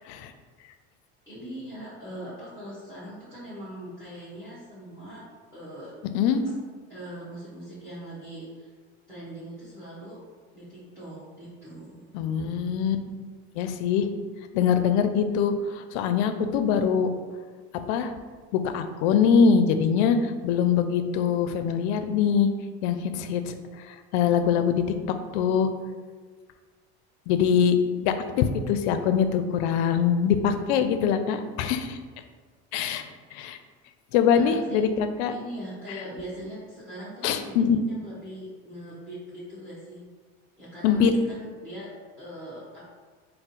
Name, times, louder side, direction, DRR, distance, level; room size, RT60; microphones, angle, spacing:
voice 1, 1.2-5.2 5.5-5.9 6.9-8.7 9.1-10.2 10.5-12.0 34.3-34.8 35.3-37.5 37.9-40.0 40.6-41.9 42.2-42.8, right 1 dB, 10° right, -12 dB, 1.5 m, -41 dB
voice 2, 12.1-13.0 13.5-14.1 14.5-17.1 17.9-18.1 18.5-22.5 22.8-23.5 23.9-24.8 25.3-25.7 27.3-27.8 28.0-32.0 32.7-33.0 33.3-33.6 34.1-35.3 37.2-37.8 40.8-41.1, left 7 dB, 80° left, 9 dB, 0.5 m, -23 dB
3.7 x 2.1 x 4.2 m, 1.5 s
supercardioid pair, 100°, 34 cm